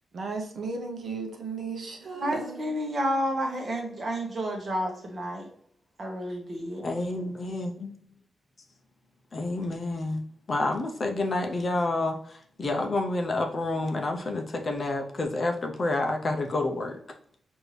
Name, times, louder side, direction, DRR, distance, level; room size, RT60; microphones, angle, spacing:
voice 1, 0.1-2.7, right 4 dB, 50° right, 2 dB, 0.6 m, -35 dB
voice 2, 2.1-5.5 6.0-6.9, equal, 30° right, 1 dB, 1.0 m, -30 dB
voice 3, 6.8-7.9 9.3-17.0, left 2 dB, 35° left, 3 dB, 0.5 m, -29 dB
6.2 x 2.6 x 3.2 m, 0.63 s
wide cardioid pair, 165°, 0 cm